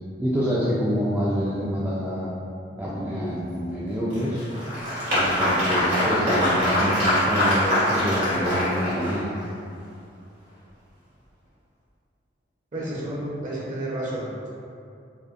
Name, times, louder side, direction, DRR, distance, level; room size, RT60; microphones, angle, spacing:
voice 1, 0.2-2.3 2.8-4.4 5.1-9.3, equal, 10° right, -8 dB, 0.3 m, -26 dB
Applause, 4.1-9.4, equal, 90° right, 1.3 m, -23 dB
voice 2, 12.7-14.5, right 1 dB, 45° right, -7 dB, 0.8 m, -31 dB
4.9 x 2.0 x 2.5 m, 2.5 s
head